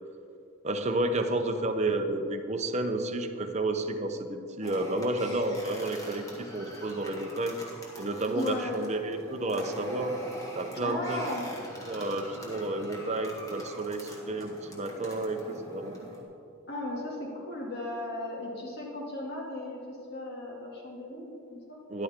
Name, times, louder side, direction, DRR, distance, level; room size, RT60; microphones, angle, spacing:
voice 1, 0.6-7.6 8.0-10.1 10.5-11.2 11.8-16.0 21.9-22.0, right 2 dB, 30° right, 6 dB, 0.7 m, -31 dB
sound 1, 4.6-16.2, equal, 15° left, 1.7 m, -44 dB
voice 2, 8.3-8.7 10.8-11.5 16.7-21.8, left 1 dB, 45° left, -3 dB, 2.4 m, -36 dB
13.5 x 11.0 x 3.7 m, 2.6 s
head